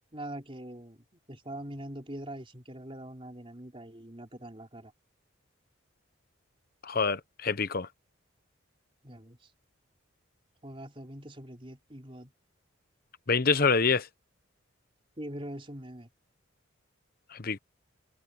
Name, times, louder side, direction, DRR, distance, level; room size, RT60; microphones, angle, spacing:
voice 1, 0.1-4.9 9.0-9.5 10.6-12.3 15.2-16.1, right 1 dB, 25° right, 3.9 m, -43 dB
voice 2, 6.8-7.9 13.3-14.1 17.3-17.6, left 4 dB, 45° left, 0.9 m, -26 dB
head